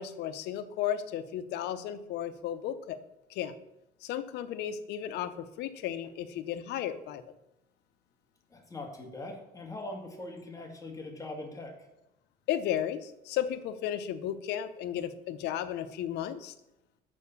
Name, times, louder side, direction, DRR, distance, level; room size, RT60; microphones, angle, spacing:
voice 1, 0.0-3.0 3.3-3.5 4.0-7.2 12.5-16.5, left 10 dB, 80° left, 12 dB, 0.7 m, -34 dB
voice 2, 8.5-11.8, left 2 dB, 20° left, 2 dB, 1.8 m, -41 dB
6.3 x 5.9 x 6.9 m, 0.89 s
cardioid pair, 110°, 17 cm